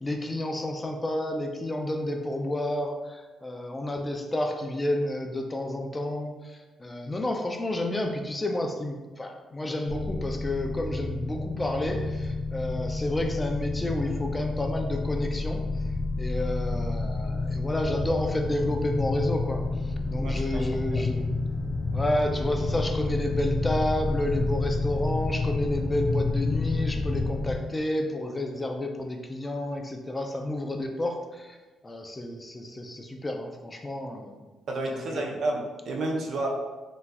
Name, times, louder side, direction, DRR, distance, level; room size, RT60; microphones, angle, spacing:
voice 1, 0.0-15.6 16.2-21.3 21.9-31.6 31.8-34.4 34.9-35.2, left 1 dB, 20° left, 3 dB, 0.3 m, -30 dB
sound 1, 9.9-27.5, left 3 dB, 65° left, 1.0 m, -29 dB
voice 2, 20.2-20.7 20.9-21.0 34.7-36.5, right 2 dB, 65° right, 0 dB, 0.5 m, -30 dB
4.0 x 2.3 x 2.2 m, 1.2 s
cardioid pair, 90°, 0 cm